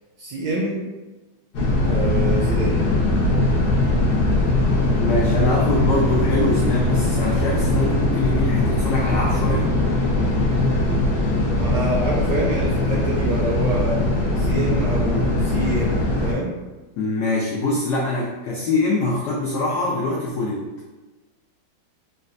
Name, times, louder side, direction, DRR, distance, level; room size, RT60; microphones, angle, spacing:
voice 1, 0.2-0.8 1.9-2.8 11.5-14.0 14.4-16.5, right 2 dB, 75° right, -4 dB, 1.0 m, -27 dB
sound 1, 1.5-16.3, left 2 dB, 65° left, 1.1 m, -20 dB
voice 2, 5.0-9.7 17.0-20.7, left 2 dB, 90° left, -3 dB, 0.8 m, -23 dB
4.0 x 2.2 x 2.5 m, 1.2 s
omnidirectional pair, 2.3 m